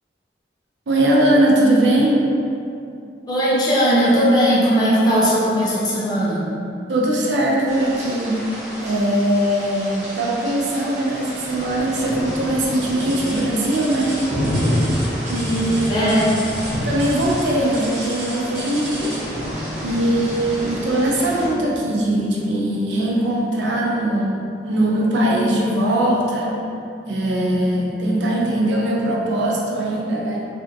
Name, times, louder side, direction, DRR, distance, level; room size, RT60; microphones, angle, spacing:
voice 1, 0.9-2.3 6.9-8.3 8.8-14.2 15.3-16.2 16.7-19.1 19.8-26.5 27.1-30.5, right 1 dB, 85° right, -3 dB, 0.5 m, -20 dB
voice 2, 3.3-6.5 15.9-16.3, equal, 20° left, -8 dB, 0.5 m, -18 dB
sound 1, 7.7-21.5, equal, 40° right, 0.6 m, -28 dB
sound 2, 13.0-19.4 20.3-20.6 21.1-21.2 21.9-22.0, right 1 dB, 65° right, 1.3 m, -35 dB
3.3 x 2.5 x 2.6 m, 2.6 s
head